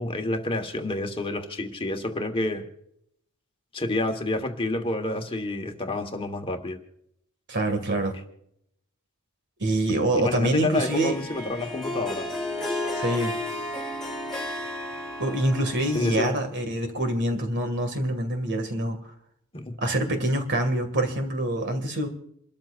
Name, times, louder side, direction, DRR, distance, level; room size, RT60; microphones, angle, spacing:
voice 1, 0.0-2.6 3.7-6.8 10.2-12.3 15.9-16.3 19.5-19.7, left 2 dB, 25° left, 1.5 m, -29 dB
voice 2, 7.5-8.1 9.6-11.2 13.0-13.3 15.2-19.0 19.8-22.1, right 1 dB, 50° right, 2.3 m, -25 dB
Harp, 10.7-16.5, left 1 dB, ahead, 3.0 m, -33 dB
28.5 x 13.5 x 2.6 m
head